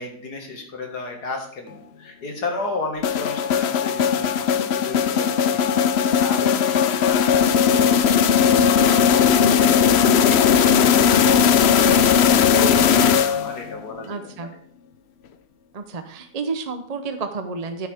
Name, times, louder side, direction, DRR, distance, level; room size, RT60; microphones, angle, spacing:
voice 1, 0.0-14.2, left 3 dB, 80° left, 3 dB, 2.4 m, -34 dB
sound 1, 3.0-13.7, left 7 dB, 65° left, 0.6 m, -18 dB
voice 2, 14.0-14.5 15.7-17.9, right 4 dB, 40° right, 7 dB, 0.6 m, -31 dB
10.0 x 9.4 x 3.5 m, 0.63 s
omnidirectional pair, 1.7 m